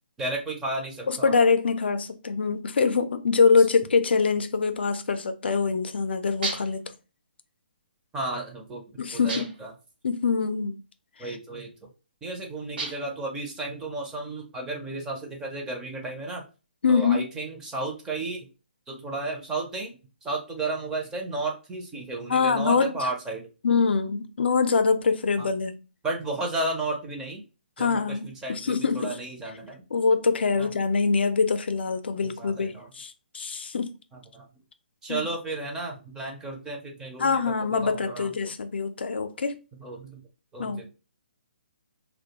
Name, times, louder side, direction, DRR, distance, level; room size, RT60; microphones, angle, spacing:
voice 1, 0.2-1.4 8.1-8.8 9.1-9.7 11.2-11.9 12.2-16.4 16.9-18.5 18.9-19.9 20.2-23.5 25.4-25.5 26.0-27.4 27.8-29.8 30.6-30.7 32.2-32.9 34.3-34.5 35.0-37.4 37.8-38.5 39.8-40.2 40.5-40.9, right 2 dB, 10° right, 0.4 m, -33 dB
voice 2, 1.1-6.9 9.0-9.5 10.0-10.8 11.2-11.4 16.8-17.2 22.3-22.9 23.6-25.8 27.8-29.2 29.9-33.9 35.1-35.3 37.2-39.6 40.6-40.8, left 5 dB, 80° left, 0.4 m, -24 dB
sound 1, 6.4-6.9 9.3-9.7 12.8-13.2, right 3 dB, 60° right, 0.9 m, -33 dB
2.3 x 2.1 x 2.7 m
hypercardioid pair, 160°, 6 cm